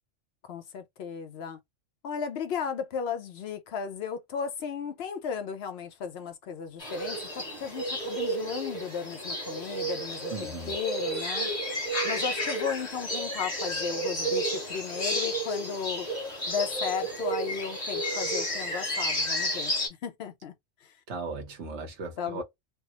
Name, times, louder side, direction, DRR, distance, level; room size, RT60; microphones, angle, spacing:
voice 1, 0.5-1.6 2.0-16.1 16.5-19.7 20.0-20.5 20.8-20.9 22.2-22.4, left 7 dB, 60° left, 0.9 m, -35 dB
sound 1, 6.8-19.9, equal, 35° left, 1.5 m, -31 dB
voice 2, 10.3-10.7 21.1-22.4, right 4 dB, 70° right, 1.2 m, -37 dB
3.4 x 2.0 x 2.7 m
omnidirectional pair, 1.3 m